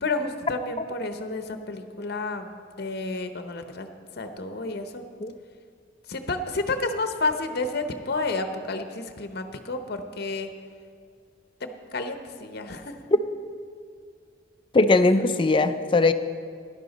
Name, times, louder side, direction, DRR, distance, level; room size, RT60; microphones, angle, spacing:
voice 1, 0.0-3.9 4.2-5.0 6.1-10.5 11.6-13.0, left 3 dB, 55° left, 7 dB, 0.7 m, -30 dB
voice 2, 14.7-16.1, left 3 dB, 25° left, 9 dB, 0.4 m, -20 dB
13.0 x 11.0 x 4.1 m, 2.2 s
head